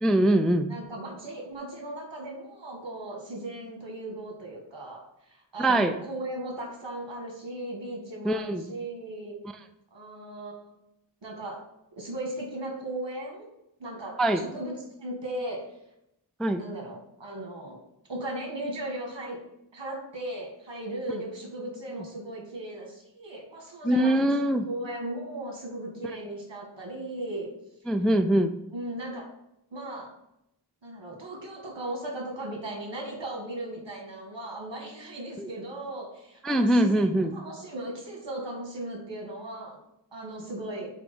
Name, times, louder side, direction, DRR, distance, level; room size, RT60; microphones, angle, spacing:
voice 1, 0.0-0.7 5.6-5.9 8.2-8.7 14.2-14.4 16.4-16.6 23.8-24.7 27.9-28.5 35.4-35.5 36.4-37.4, right 1 dB, ahead, 8 dB, 0.3 m, -23 dB
voice 2, 0.7-9.4 9.9-10.7 11.2-11.6 12.0-13.5 13.8-14.7 15.0-15.6 16.6-17.8 18.1-19.4 19.7-24.3 24.6-27.5 28.7-29.3 29.7-30.1 30.8-39.8 40.1-40.9, right 1 dB, 70° right, 1 dB, 1.8 m, -37 dB
5.0 x 4.5 x 5.4 m, 0.84 s
wide cardioid pair, 70°, 45 cm